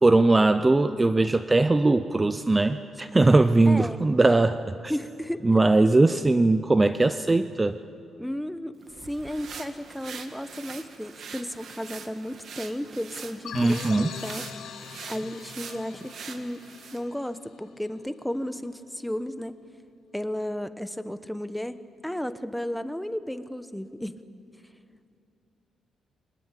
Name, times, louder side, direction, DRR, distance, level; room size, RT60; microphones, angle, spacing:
voice 1, 0.0-4.9 5.4-7.8 13.5-14.1, right 2 dB, 20° right, 11 dB, 0.5 m, -20 dB
voice 2, 3.7-4.0 4.9-5.5 8.2-8.7 9.0-14.4 15.1-16.6 16.9-19.5 20.1-21.8 22.0-24.2, equal, 5° left, 11 dB, 0.9 m, -33 dB
sound 1, 8.8-17.1, right 6 dB, 60° right, 1.8 m, -43 dB
sound 2, 13.4-17.9, left 8 dB, 75° left, 1.0 m, -42 dB
24.0 x 19.0 x 8.2 m, 2.4 s
cardioid pair, 115°, 0 cm